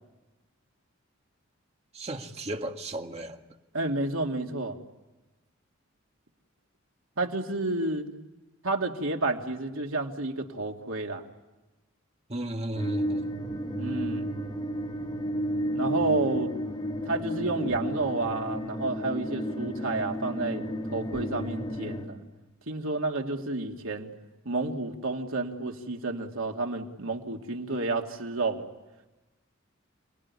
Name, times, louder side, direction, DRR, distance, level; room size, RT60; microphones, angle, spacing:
voice 1, 1.9-3.4 12.3-13.3, right 1 dB, 30° right, 4 dB, 1.9 m, -35 dB
voice 2, 3.7-4.8 7.2-8.1 8.6-11.2 13.8-14.3 15.7-16.5 17.1-20.6 20.9-22.2 22.7-24.1 24.4-28.7, right 2 dB, 80° right, 2 dB, 2.6 m, -30 dB
sound 1, 12.7-22.0, equal, 25° left, 3.5 m, -32 dB
29.5 x 20.0 x 9.9 m, 1.1 s
head